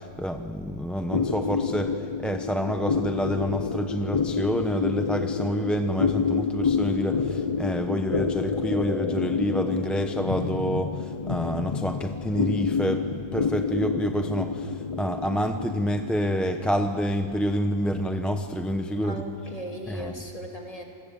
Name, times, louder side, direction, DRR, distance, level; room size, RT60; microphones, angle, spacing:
voice 1, 0.0-19.2 19.9-20.1, equal, ahead, 5 dB, 0.7 m, -28 dB
sound 1, 1.1-19.9, left 5 dB, 45° left, 0.4 m, -29 dB
voice 2, 19.0-20.8, right 1 dB, 25° left, 1 dB, 3.4 m, -37 dB
27.5 x 21.5 x 8.7 m, 2.4 s
omnidirectional pair, 1.5 m